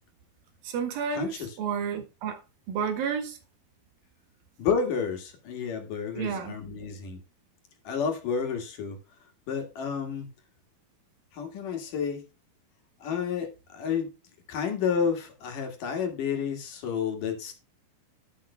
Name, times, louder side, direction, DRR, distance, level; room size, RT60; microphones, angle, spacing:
voice 1, 0.6-2.4 2.7-3.4 6.2-6.6, right 6 dB, 70° right, 3.5 m, -31 dB
voice 2, 1.1-1.5 4.6-7.2 7.8-9.0 9.5-10.3 11.3-12.2 13.0-14.1 14.5-17.5, left 6 dB, 65° left, 3.3 m, -30 dB
11.5 x 9.6 x 2.2 m
omnidirectional pair, 4.4 m